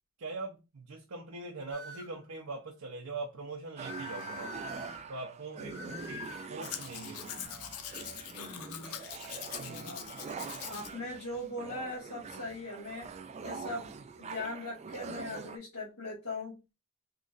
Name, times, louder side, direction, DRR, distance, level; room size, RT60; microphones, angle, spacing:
voice 1, 0.2-7.4 9.6-10.0, right 3 dB, 75° right, 0.7 m, -42 dB
sound 1, 1.7-2.2 3.8-5.0 5.7-6.5, left 5 dB, 50° left, 0.7 m, -45 dB
sound 2, 3.8-15.6, right 5 dB, 30° right, 0.3 m, -44 dB
voice 2, 5.6-6.0 8.3-9.0 9.7-10.1 10.7-13.1 13.4-13.9 14.2-16.6, left 2 dB, 65° left, 1.7 m, -40 dB
Domestic sounds home sounds, 6.6-10.9 11.3-11.4, left 10 dB, 90° left, 0.5 m, -43 dB
3.9 x 3.0 x 2.4 m
head